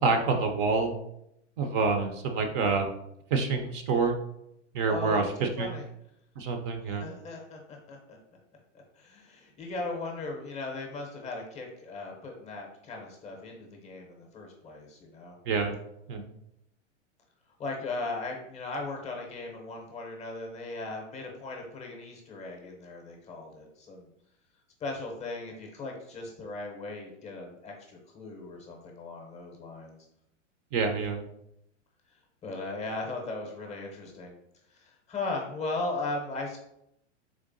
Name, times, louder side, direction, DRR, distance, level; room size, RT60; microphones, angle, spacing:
voice 1, 0.0-0.9 1.6-2.9 3.3-4.2 4.7-5.7 6.4-7.1 15.5-15.7 16.1-16.2 30.7-31.2, right 4 dB, 45° right, 5 dB, 0.5 m, -27 dB
voice 2, 4.9-5.9 6.8-8.2 8.7-15.4 17.6-24.1 24.8-30.0 32.4-34.3 34.7-36.6, left 2 dB, 20° left, 1 dB, 0.6 m, -38 dB
3.7 x 3.1 x 2.6 m, 0.79 s
hypercardioid pair, 125°, 37 cm